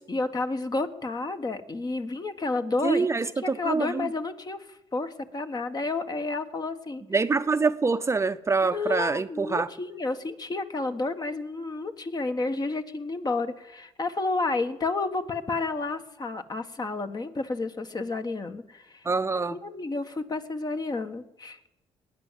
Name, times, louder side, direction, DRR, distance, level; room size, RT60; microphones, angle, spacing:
voice 1, 0.1-3.1 3.4-7.0 8.6-19.1 19.5-21.7, left 3 dB, 35° left, 8 dB, 1.5 m, -31 dB
voice 2, 2.8-4.1 7.1-9.7 19.0-19.6, right 4 dB, 25° right, 10 dB, 0.7 m, -25 dB
19.5 x 9.6 x 7.5 m, 0.95 s
supercardioid pair, 70°, 12 cm